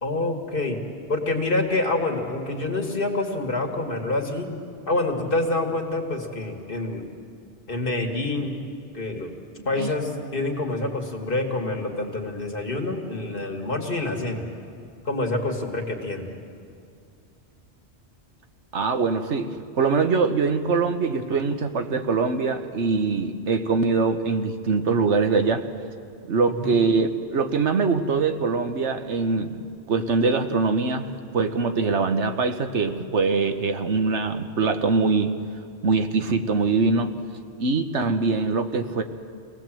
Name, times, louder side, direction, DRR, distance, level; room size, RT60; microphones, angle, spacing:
voice 1, 0.0-0.8 1.1-4.5 4.9-7.1 7.7-8.6 8.9-9.3 9.6-14.4 15.0-16.3 26.5-26.8, left 2 dB, 50° left, 2 dB, 2.4 m, -27 dB
voice 2, 18.7-25.7 26.3-31.1 31.3-35.3 35.8-37.1 37.6-39.0, right 4 dB, 85° right, 7 dB, 1.4 m, -23 dB
26.0 x 18.5 x 7.7 m, 2.5 s
omnidirectional pair, 1.2 m